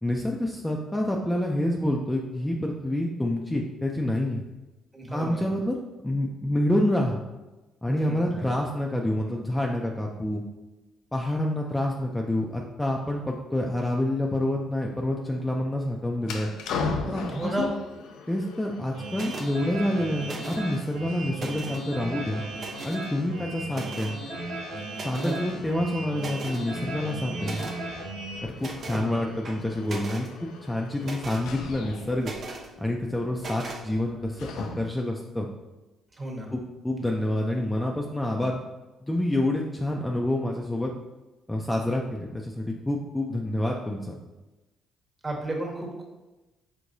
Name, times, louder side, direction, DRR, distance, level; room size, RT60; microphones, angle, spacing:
voice 1, 0.0-4.4 5.1-5.8 6.0-7.2 7.8-10.4 11.1-16.5 17.1-17.7 18.3-22.4 22.8-24.2 25.0-27.7 28.4-30.3 30.6-32.3 32.8-35.5 36.5-38.6 39.0-40.9 41.5-44.2, left 1 dB, 10° left, 0 dB, 0.5 m, -28 dB
voice 2, 4.9-5.5 7.9-8.5 17.3-17.8 25.2-25.3 28.9-29.0 36.2-36.5 45.2-46.0, right 1 dB, 25° right, -1 dB, 1.3 m, -32 dB
sound 1, 16.2-35.1, left 4 dB, 80° left, 0.4 m, -40 dB
sound 2, 18.9-28.4, right 2 dB, 90° right, 0.8 m, -37 dB
sound 3, 19.1-19.5 20.2-20.8 21.2-21.9 22.6-23.1 23.7-24.2 24.9-25.4 25.8-25.9 26.2-26.6 27.4-27.8 28.6-29.1 29.4-30.3 31.0-31.5 32.2-32.7 33.4-33.8, right 3 dB, 50° right, 0.7 m, -39 dB
4.7 x 3.4 x 2.6 m, 1.1 s
supercardioid pair, 75°, 0 cm